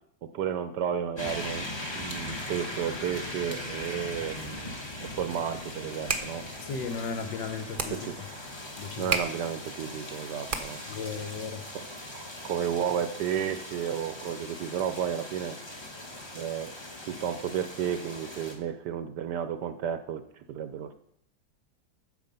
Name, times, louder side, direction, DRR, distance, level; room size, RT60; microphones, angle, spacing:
voice 1, 0.2-6.4 7.9-8.2 9.0-10.8 11.7-11.8 12.1-15.6 16.3-16.7 17.0-21.0, right 9 dB, 70° right, 10 dB, 1.1 m, -32 dB
sound 1, 1.2-18.6, left 1 dB, 20° left, 0.9 m, -40 dB
sound 2, 6.0-11.0, right 4 dB, 45° right, 0.7 m, -36 dB
voice 2, 6.6-8.0 8.8-9.1 10.9-11.6, left 5 dB, 70° left, 8 dB, 1.5 m, -35 dB
9.5 x 6.9 x 5.4 m, 0.71 s
omnidirectional pair, 2.1 m